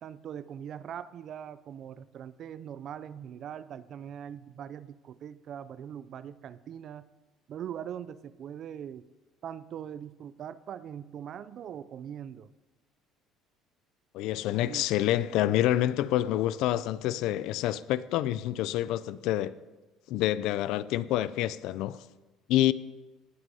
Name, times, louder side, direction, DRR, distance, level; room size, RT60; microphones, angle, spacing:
voice 1, 0.0-7.0 7.5-9.1 9.4-12.5 14.6-14.9, right 9 dB, 35° right, 0.4 m, -41 dB
voice 2, 14.1-19.5 20.1-22.0 22.5-22.7, left 13 dB, 60° left, 0.4 m, -27 dB
18.5 x 6.2 x 5.5 m
cardioid pair, 175°, 0 cm